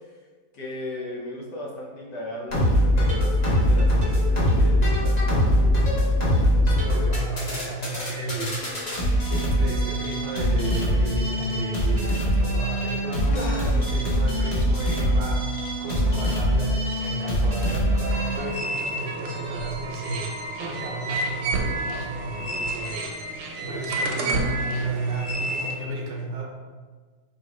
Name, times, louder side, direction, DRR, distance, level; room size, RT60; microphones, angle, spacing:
voice 1, 0.5-6.3 13.3-13.8 22.4-22.7, left 1 dB, 80° left, -2 dB, 1.4 m, -37 dB
sound 1, 2.5-18.4, equal, 35° left, 0.7 m, -23 dB
voice 2, 6.6-8.6 9.3-20.3 20.6-23.1 23.4-26.4, right 2 dB, 55° right, -2 dB, 0.9 m, -32 dB
sound 2, 18.1-25.7, right 2 dB, 75° right, 1.2 m, -30 dB
4.6 x 2.9 x 3.1 m, 1.4 s
omnidirectional pair, 1.8 m